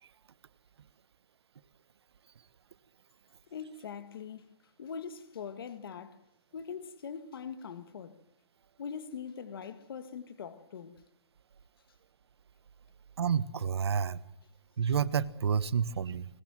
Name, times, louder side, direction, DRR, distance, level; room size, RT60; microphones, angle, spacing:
voice 1, 3.5-4.5 4.8-6.2 6.5-8.2 8.8-11.0, left 6 dB, 60° left, 1.8 m, -42 dB
voice 2, 13.2-14.2 14.8-16.3, right 7 dB, 70° right, 1.3 m, -29 dB
21.5 x 20.5 x 7.6 m
hypercardioid pair, 170°, 14 cm